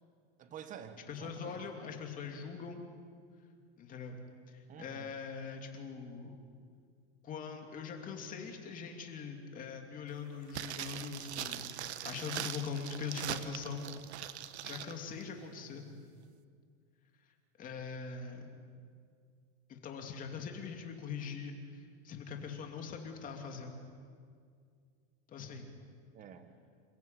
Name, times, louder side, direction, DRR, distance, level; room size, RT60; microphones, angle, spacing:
voice 1, 0.4-1.6 4.7-5.1 15.6-16.2 26.1-26.5, right 8 dB, 25° right, 9 dB, 1.5 m, -50 dB
voice 2, 1.1-2.8 3.8-4.2 4.5-6.3 7.2-13.9 14.6-15.8 17.6-18.5 19.7-23.8 25.3-25.7, left 5 dB, 25° left, 3 dB, 2.9 m, -42 dB
sound 1, 10.5-14.9 15.2-15.3, right 11 dB, 90° right, 1.3 m, -41 dB
28.5 x 15.0 x 9.3 m, 2.2 s
supercardioid pair, 155°, 32 cm